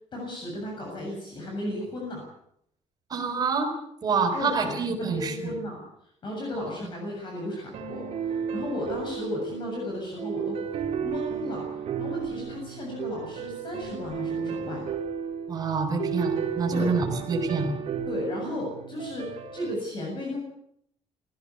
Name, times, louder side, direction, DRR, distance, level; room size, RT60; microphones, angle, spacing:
voice 1, 0.1-2.2 4.3-5.8 6.2-10.6 11.0-14.9 16.7-16.9 18.1-20.4, left 1 dB, 40° left, 0 dB, 7.4 m, -34 dB
voice 2, 3.1-3.7 4.0-5.6 15.5-17.7, right 4 dB, 35° right, 4 dB, 5.5 m, -27 dB
sound 1, 7.7-19.7, right 7 dB, 60° right, 4.3 m, -33 dB
20.0 x 16.0 x 8.4 m, 0.72 s
cardioid pair, 145°, 12 cm